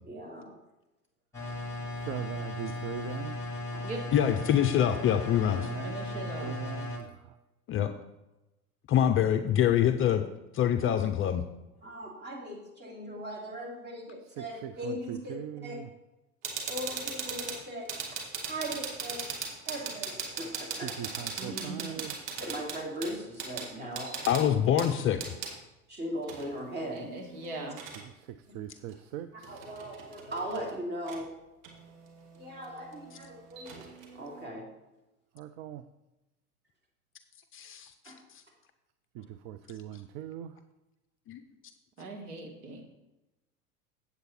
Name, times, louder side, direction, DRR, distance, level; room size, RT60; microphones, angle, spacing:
voice 1, 0.0-0.5 3.7-3.8 10.7-10.9 11.8-15.4 15.6-15.8 16.7-18.2 18.5-19.2 19.6-20.9 22.4-24.5 25.9-27.1 29.5-31.3 32.3-34.6 38.0-38.2 39.2-39.3, equal, 25° right, -1 dB, 2.9 m, -39 dB
sound 1, 1.3-7.0, left 2 dB, 5° left, 2.5 m, -36 dB
voice 2, 1.9-3.4 5.5-7.4 14.4-15.9 20.8-22.2 28.0-29.7 35.3-35.9 39.1-40.6, right 11 dB, 40° right, 11 dB, 0.5 m, -41 dB
voice 3, 4.1-5.7 7.7-7.9 8.9-10.2 10.5-11.4 24.3-25.2 37.5-37.9 41.3-41.4, left 10 dB, 30° left, 8 dB, 0.5 m, -25 dB
voice 4, 5.8-6.5 21.4-22.0 26.9-27.8 42.0-42.8, right 2 dB, 75° right, 1 dB, 2.0 m, -40 dB
sound 2, 16.4-25.5 26.2-28.0 28.9-29.0 29.4-30.7 31.1-31.2 31.6-34.5, right 5 dB, 60° right, 2.0 m, -40 dB
8.1 x 8.0 x 4.3 m, 1.0 s
hypercardioid pair, 80°, 44 cm